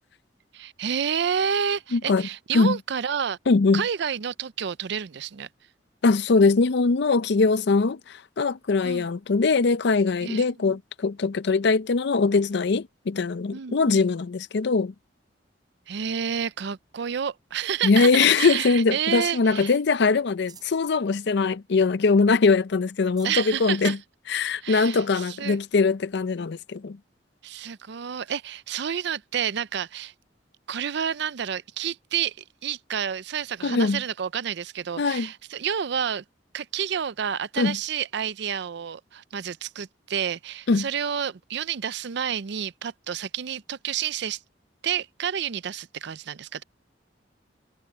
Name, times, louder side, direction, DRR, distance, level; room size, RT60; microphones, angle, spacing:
voice 1, 0.5-3.4 3.7-5.5 8.8-9.1 10.2-10.8 13.5-14.0 15.9-19.7 23.2-24.0 24.6-25.6 27.4-30.1 30.7-36.2 36.5-44.4 44.8-46.6, right 8 dB, 70° right, 0.5 m, -29 dB
voice 2, 1.9-2.3 2.5-2.8 3.5-3.8 6.0-14.9 17.8-24.0 24.3-27.0 33.6-34.0 35.0-35.3 37.6-37.8 40.7-40.9, left 4 dB, 65° left, 0.5 m, -22 dB
sound 1, 15.8-18.5 19.0-19.8 20.2-20.9 21.3-21.4 21.8-21.9 22.5-22.6 22.9-23.4 24.2-24.3 26.1-26.2, right 6 dB, 25° right, 4.0 m, -55 dB
head